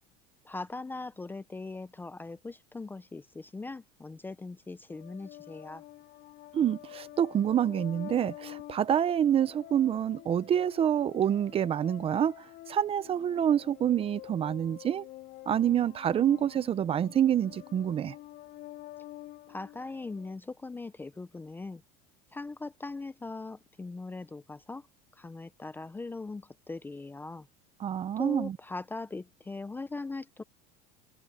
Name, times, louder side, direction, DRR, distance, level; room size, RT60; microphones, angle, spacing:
voice 1, 0.4-5.8 19.5-21.8 22.3-24.9 25.2-27.5 28.2-30.4, left 3 dB, 10° left, 0.6 m, -40 dB
sound 1, 4.9-20.3, left 16 dB, 50° left, 4.2 m, -48 dB
voice 2, 6.5-15.1 15.5-18.1 27.8-28.6, right 9 dB, 25° right, 0.8 m, -27 dB
supercardioid pair, 145°, 21 cm